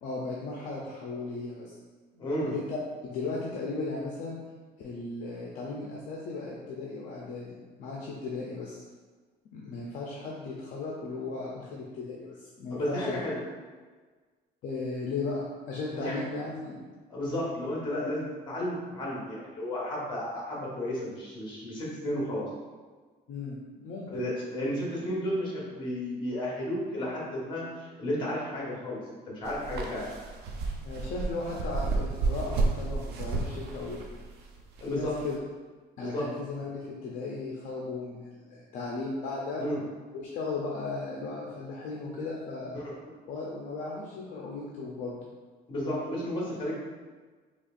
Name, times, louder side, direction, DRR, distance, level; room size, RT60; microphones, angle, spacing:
voice 1, 0.0-1.7 2.4-4.4 4.8-8.8 9.5-13.3 14.6-16.8 23.3-24.3 30.8-34.0 34.8-35.4 36.0-39.6 40.3-42.8 43.3-45.2, left 3 dB, 50° left, -3 dB, 0.5 m, -36 dB
voice 2, 2.1-2.5 12.7-13.4 15.9-16.2 17.1-22.4 24.1-29.0 29.3-30.0 34.8-35.1 36.0-36.2 39.6-39.8 42.7-42.9 45.7-46.7, left 1 dB, 25° left, -5 dB, 1.1 m, -33 dB
sound 1, 29.4-35.4, right 3 dB, 70° right, 0.5 m, -32 dB
4.1 x 2.8 x 2.4 m, 1.4 s
cardioid pair, 180°, 17 cm